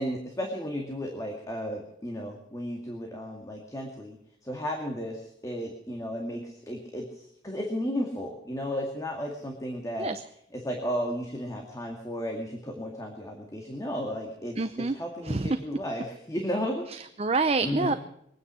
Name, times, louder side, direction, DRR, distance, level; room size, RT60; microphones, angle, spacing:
voice 1, 0.0-4.2 4.4-10.1 10.5-14.6 14.9-16.8 17.6-18.0, equal, 20° left, 1 dB, 2.1 m, -34 dB
voice 2, 14.6-15.0 15.2-15.6 16.9-17.9, right 3 dB, 35° right, 10 dB, 0.6 m, -27 dB
23.0 x 9.7 x 6.2 m, 0.78 s
head